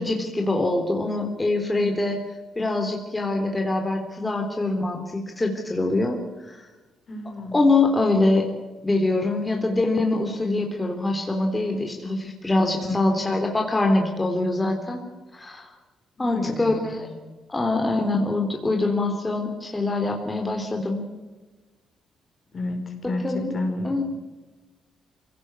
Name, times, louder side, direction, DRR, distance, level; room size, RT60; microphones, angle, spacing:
voice 1, 0.0-2.2 2.6-6.6 7.5-8.5 8.8-15.0 15.3-15.7 16.2-17.1 17.5-21.0 23.2-23.5 23.8-24.0, left 2 dB, 15° left, 2 dB, 3.6 m, -24 dB
voice 2, 7.1-7.6 12.8-13.2 16.2-17.0 22.5-24.0, left 2 dB, 45° left, 5 dB, 5.0 m, -31 dB
24.0 x 17.5 x 8.2 m, 1.2 s
cardioid pair, 90°, 0 cm